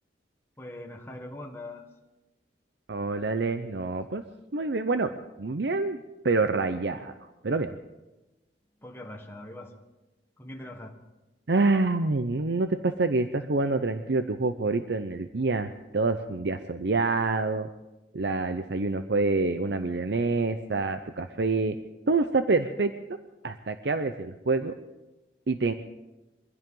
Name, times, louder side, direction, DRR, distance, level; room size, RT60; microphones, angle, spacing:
voice 1, 0.6-1.8 8.8-9.7 10.4-10.9, left 1 dB, 15° left, 1 dB, 1.5 m, -41 dB
voice 2, 2.9-4.2 4.5-5.1 5.4-6.0 6.2-7.1 7.4-7.7 11.5-17.7 18.1-21.8 22.1-23.2 23.4-24.7 25.5-25.7, right 3 dB, 70° right, 9 dB, 0.7 m, -27 dB
23.5 x 15.5 x 3.8 m, 1.1 s
head